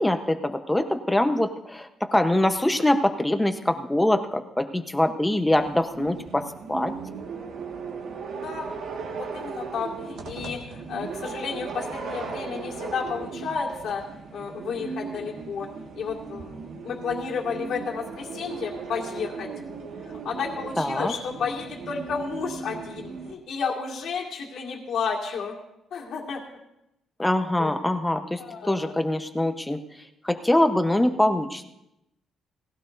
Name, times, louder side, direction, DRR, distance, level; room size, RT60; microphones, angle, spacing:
voice 1, 0.0-6.9 20.8-21.1 27.2-29.8 30.2-31.7, left 1 dB, 10° left, 6 dB, 1.0 m, -24 dB
sound 1, 5.5-23.3, right 5 dB, 65° right, 1.8 m, -37 dB
voice 2, 8.3-8.7 9.1-14.0 14.3-19.5 20.0-25.6 25.9-26.4 27.6-27.7 28.4-28.9, left 5 dB, 65° left, -1 dB, 2.1 m, -32 dB
19.0 x 16.5 x 2.7 m, 0.86 s
cardioid pair, 135°, 0 cm